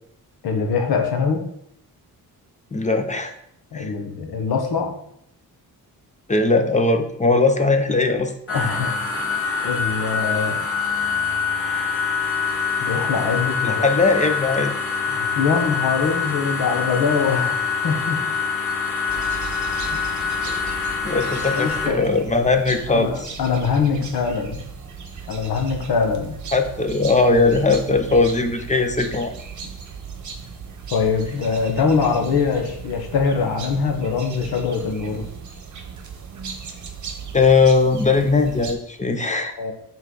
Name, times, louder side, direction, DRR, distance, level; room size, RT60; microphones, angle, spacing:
voice 1, 0.4-1.4 3.7-4.9 8.5-9.3 9.6-10.7 12.8-13.9 15.1-18.2 21.6-22.1 22.9-24.6 25.3-26.4 30.9-35.2 39.1-39.3 39.6-39.7, left 5 dB, 80° left, 3 dB, 1.2 m, -23 dB
voice 2, 2.7-3.3 3.7-3.9 6.3-8.3 13.6-14.7 19.1-19.2 20.5-20.6 21.0-23.3 26.5-29.3 37.3-39.5, left 3 dB, 20° left, 6 dB, 0.6 m, -19 dB
sound 1, 8.5-21.9, left 5 dB, 35° left, 1.6 m, -25 dB
sound 2, 19.1-38.7, right 6 dB, 50° right, 0.9 m, -37 dB
5.7 x 4.7 x 3.9 m, 0.72 s
wide cardioid pair, 125°, 37 cm